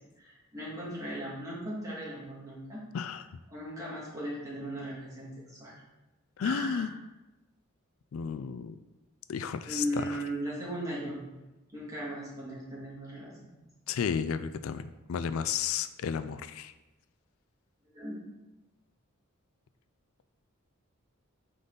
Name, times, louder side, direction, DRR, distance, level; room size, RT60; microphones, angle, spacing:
voice 1, 0.2-2.8 3.5-5.7 6.4-6.9 9.7-11.2 11.7-13.6 17.9-18.3, right 1 dB, 15° right, -6 dB, 2.2 m, -37 dB
voice 2, 2.9-3.4 6.4-6.9 8.1-8.8 9.3-10.2 13.9-16.7, left 7 dB, 75° left, 11 dB, 0.4 m, -33 dB
8.9 x 3.9 x 3.9 m, 1.0 s
head